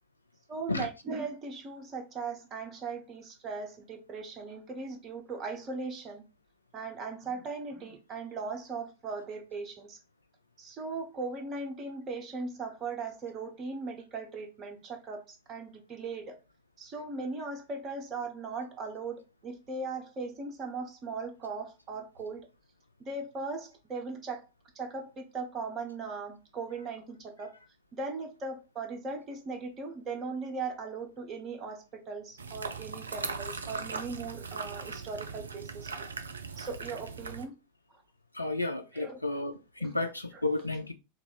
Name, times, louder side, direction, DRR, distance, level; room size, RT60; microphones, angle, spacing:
voice 1, 0.5-6.2 6.7-10.0 10.6-16.4 16.8-22.4 23.0-24.4 24.8-27.5 27.9-35.9 36.5-37.5 38.9-39.4 39.8-39.9 40.3-40.4, right 4 dB, 30° right, 0.7 m, -38 dB
sound 1, 32.4-37.4, right 4 dB, 75° right, 0.3 m, -39 dB
voice 2, 38.4-39.5 39.8-40.9, left 2 dB, 85° left, 0.3 m, -32 dB
2.9 x 2.3 x 3.7 m
figure-of-eight pair, 90°, 0 cm